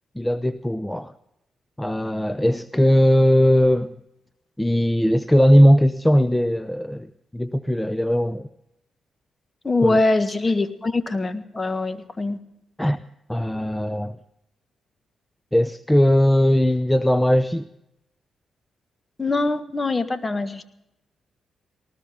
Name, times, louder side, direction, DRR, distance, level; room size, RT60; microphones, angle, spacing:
voice 1, 0.2-1.1 1.8-3.9 4.6-8.5 9.8-10.0 12.8-13.0 13.3-14.2 15.5-17.7, equal, 10° left, 0.7 m, -19 dB
voice 2, 9.6-12.4 19.2-20.6, left 2 dB, 30° left, 1.7 m, -23 dB
19.5 x 19.0 x 3.7 m
supercardioid pair, 50°, 0 cm